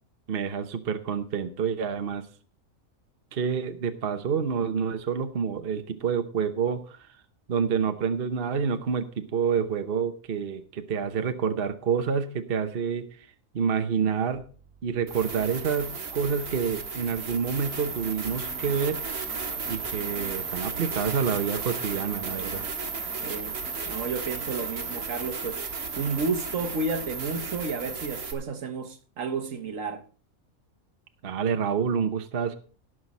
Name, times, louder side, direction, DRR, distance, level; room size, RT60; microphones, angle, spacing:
voice 1, 0.3-2.3 3.3-7.1 7.5-13.3 13.5-14.4 14.8-19.0 19.7-22.6 31.2-32.5, right 6 dB, 45° right, 1.0 m, -28 dB
sound 1, 15.1-28.3, right 5 dB, 80° right, 2.1 m, -34 dB
voice 2, 23.2-23.6 23.9-25.6 26.0-30.0, right 4 dB, 60° right, 1.4 m, -31 dB
18.0 x 6.3 x 4.1 m
omnidirectional pair, 1.6 m